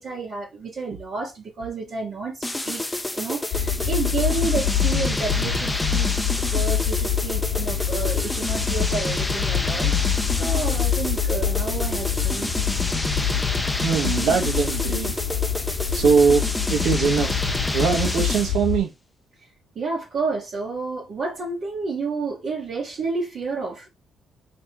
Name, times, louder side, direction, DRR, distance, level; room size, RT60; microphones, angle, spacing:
voice 1, 0.0-2.8 3.1-12.6 19.4-19.5 19.7-23.9, right 4 dB, 60° right, 1.4 m, -30 dB
sound 1, 2.4-18.6, left 1 dB, 10° left, 0.7 m, -28 dB
sound 2, 3.5-18.8, left 9 dB, 75° left, 1.2 m, -26 dB
voice 2, 13.8-15.2 15.9-16.4 16.7-17.4 17.7-18.9, right 6 dB, 80° right, 1.3 m, -21 dB
3.3 x 2.9 x 4.6 m
cardioid pair, 90°, 0 cm